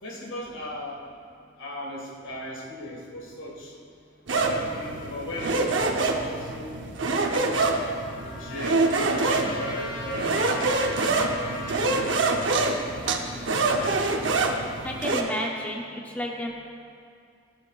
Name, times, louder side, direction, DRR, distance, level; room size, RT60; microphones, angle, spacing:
voice 1, 0.0-1.0 1.6-3.8 4.4-6.8 7.0-11.0 11.4-13.9, left 1 dB, 80° left, -2 dB, 1.8 m, -39 dB
sound 1, 4.3-15.2, right 3 dB, 75° right, 0.7 m, -26 dB
Trumpet, 7.1-12.2, left 1 dB, 55° left, 2.4 m, -39 dB
voice 2, 14.8-16.5, left 1 dB, 10° left, -1 dB, 0.6 m, -31 dB
15.5 x 7.6 x 2.4 m, 2.3 s
head